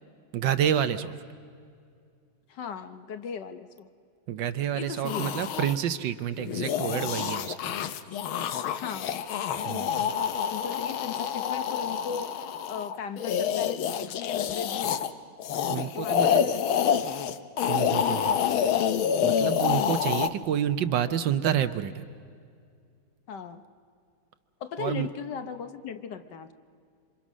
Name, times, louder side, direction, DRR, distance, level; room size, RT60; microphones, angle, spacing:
voice 1, 0.3-1.1 4.3-7.7 9.6-10.1 15.7-16.4 17.7-18.4 19.2-22.1 24.8-25.1, right 9 dB, 70° right, 11 dB, 1.4 m, -29 dB
voice 2, 2.5-3.9 4.7-5.4 8.8-9.1 10.5-12.4 12.7-15.0 15.8-17.0 23.3-23.6 24.6-26.5, left 7 dB, 65° left, 9 dB, 1.4 m, -37 dB
sound 1, 5.1-5.7 6.4-15.1 15.4-20.3, left 8 dB, 80° left, 1.7 m, -27 dB
26.5 x 26.0 x 6.2 m, 2.3 s
omnidirectional pair, 2.2 m